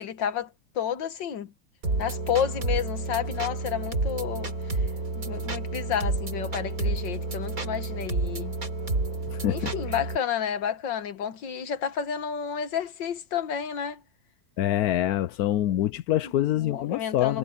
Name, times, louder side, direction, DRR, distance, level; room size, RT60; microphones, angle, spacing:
voice 1, 0.0-1.5 2.0-4.9 5.2-8.5 9.5-14.0 16.4-17.4, left 8 dB, 85° left, 2.0 m, -31 dB
sound 1, 1.8-10.2, right 3 dB, 50° right, 3.8 m, -30 dB
voice 2, 9.3-9.7 14.6-17.4, left 13 dB, 70° left, 0.9 m, -25 dB
omnidirectional pair, 1.9 m